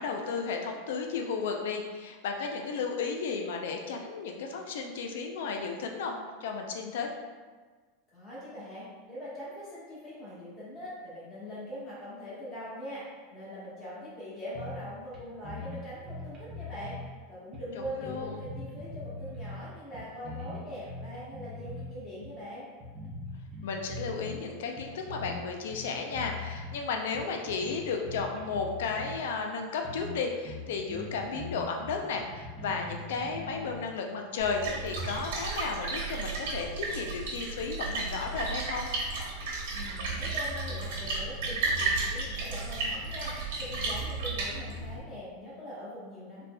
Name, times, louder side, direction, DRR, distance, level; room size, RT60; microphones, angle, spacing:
voice 1, 0.0-7.1 18.0-18.3 23.6-38.9, left 5 dB, 70° left, 3 dB, 0.4 m, -34 dB
voice 2, 8.1-13.0 13.3-17.0 17.3-22.7 39.7-46.5, equal, 20° left, -9 dB, 1.3 m, -42 dB
sound 1, 14.5-14.9 15.1-15.2 15.4-17.1 17.5-19.6 19.9-21.9 22.2-22.4 22.8-24.4 24.8-25.4 25.7-26.7 27.1-29.2 29.6-29.7 29.8-30.2 30.4-33.7, left 2 dB, 20° right, 0.6 m, -41 dB
Splash splatter, 34.4-45.0, right 3 dB, 65° right, 1.2 m, -33 dB
4.1 x 3.4 x 2.2 m, 1.4 s
supercardioid pair, 175°, 0 cm